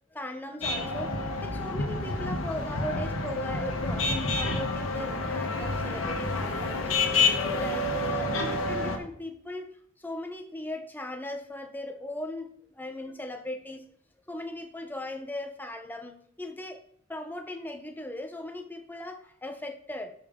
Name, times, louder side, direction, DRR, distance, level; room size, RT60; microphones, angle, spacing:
voice 1, 0.1-6.9 7.2-9.7 10.0-13.8 14.3-16.8 17.1-20.1, left 1 dB, 10° left, 5 dB, 0.8 m, -38 dB
sound 1, 0.6-9.0, left 3 dB, 65° left, 1.4 m, -29 dB
12.5 x 5.6 x 3.7 m, 0.66 s
head